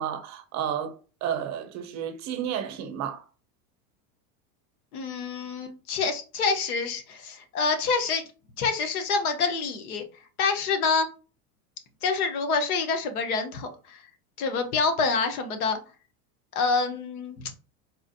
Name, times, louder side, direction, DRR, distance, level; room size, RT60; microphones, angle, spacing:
voice 1, 0.0-3.2, right 9 dB, 40° right, 0.6 m, -32 dB
voice 2, 4.9-8.2 8.6-10.0 10.4-11.1 12.0-14.0 14.4-15.8 16.5-17.6, left 4 dB, 85° left, 1.0 m, -27 dB
4.1 x 2.5 x 2.6 m
supercardioid pair, 115°, 43 cm